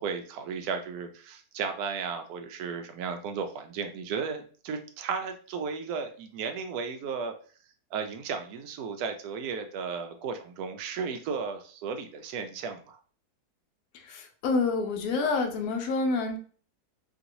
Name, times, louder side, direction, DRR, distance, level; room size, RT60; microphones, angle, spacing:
voice 1, 0.0-7.3 7.9-13.0, right 5 dB, 75° right, 6 dB, 1.0 m, -34 dB
voice 2, 13.9-16.4, left 3 dB, 70° left, 4 dB, 1.1 m, -28 dB
3.1 x 2.9 x 2.6 m, 0.42 s
omnidirectional pair, 1.7 m